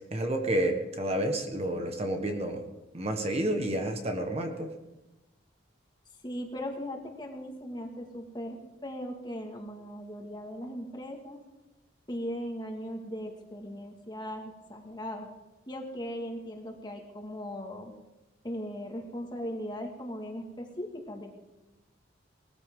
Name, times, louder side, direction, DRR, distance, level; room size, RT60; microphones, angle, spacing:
voice 1, 0.1-2.6 2.9-4.7, right 1 dB, 35° right, 4 dB, 1.3 m, -30 dB
voice 2, 6.2-8.6 8.8-11.4 12.1-15.3 15.7-17.9 18.4-21.3, equal, 25° left, 1 dB, 2.0 m, -38 dB
20.0 x 14.0 x 3.8 m, 1.1 s
head